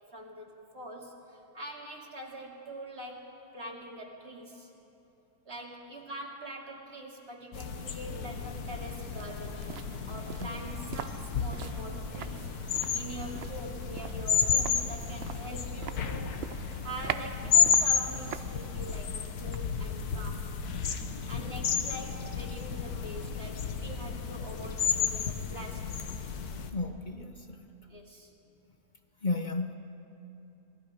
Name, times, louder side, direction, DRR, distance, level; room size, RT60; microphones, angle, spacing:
voice 1, 0.1-0.5 0.7-4.7 5.4-9.8 10.1-20.5 21.3-26.0 27.9-28.3, right 1 dB, 40° right, -1 dB, 2.8 m, -44 dB
sound 1, 7.5-26.7, left 6 dB, 90° left, 1.6 m, -32 dB
sound 2, 7.9-21.1 21.3-21.4, right 9 dB, 60° right, 0.7 m, -44 dB
voice 2, 26.7-27.6 29.2-29.7, left 3 dB, 35° left, 6 dB, 0.9 m, -33 dB
26.5 x 20.0 x 5.0 m, 2.9 s
omnidirectional pair, 1.6 m